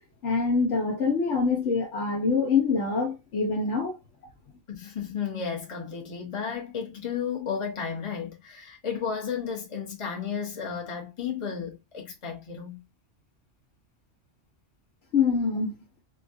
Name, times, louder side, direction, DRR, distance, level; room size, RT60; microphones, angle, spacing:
voice 1, 0.2-3.9 15.1-15.7, left 4 dB, 70° left, 1.2 m, -25 dB
voice 2, 4.7-12.8, left 6 dB, 25° left, 0.9 m, -33 dB
4.4 x 2.3 x 2.5 m
omnidirectional pair, 1.3 m